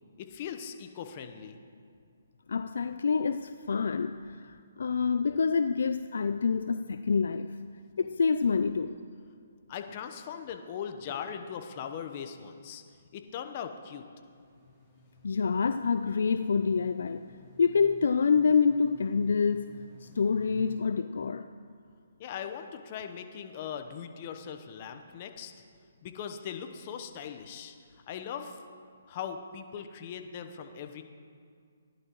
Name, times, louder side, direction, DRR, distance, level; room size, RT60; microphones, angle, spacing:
voice 1, 0.2-1.6 9.7-12.8 13.1-14.0 22.2-25.5 26.0-27.8 28.1-28.6 29.1-31.0, left 8 dB, 40° left, 0.9 m, -40 dB
voice 2, 2.5-7.6 8.0-9.0 15.2-17.3 17.6-21.5, left 5 dB, 70° left, 0.3 m, -27 dB
sound 1, 14.3-20.8, left 1 dB, ahead, 2.9 m, -55 dB
16.0 x 11.0 x 3.1 m
hypercardioid pair, 140°, 0 cm